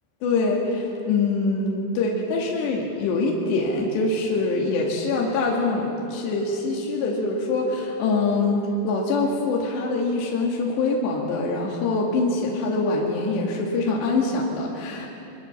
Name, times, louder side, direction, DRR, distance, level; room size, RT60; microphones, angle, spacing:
voice 1, 0.2-15.1, left 3 dB, 65° left, -2 dB, 4.2 m, -24 dB
26.5 x 23.5 x 7.3 m, 2.8 s
omnidirectional pair, 5.6 m